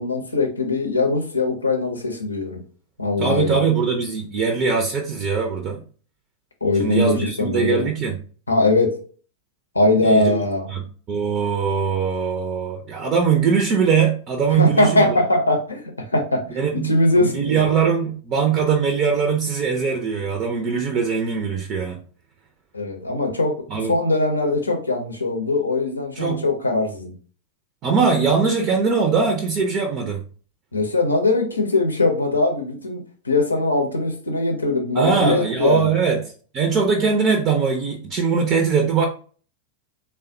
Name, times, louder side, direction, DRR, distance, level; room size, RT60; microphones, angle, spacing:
voice 1, 0.0-2.6 3.0-3.6 6.6-7.9 8.5-9.0 9.7-10.7 14.5-17.6 22.7-27.1 30.7-35.9, left 2 dB, 80° left, 0.6 m, -21 dB
voice 2, 3.2-5.8 6.8-8.2 10.0-15.1 16.6-16.9 17.2-22.0 23.7-24.0 26.2-26.4 27.8-30.2 34.9-36.2 36.5-39.1, right 5 dB, 35° right, 0.5 m, -21 dB
3.4 x 2.1 x 2.6 m
figure-of-eight pair, 90°, 0 cm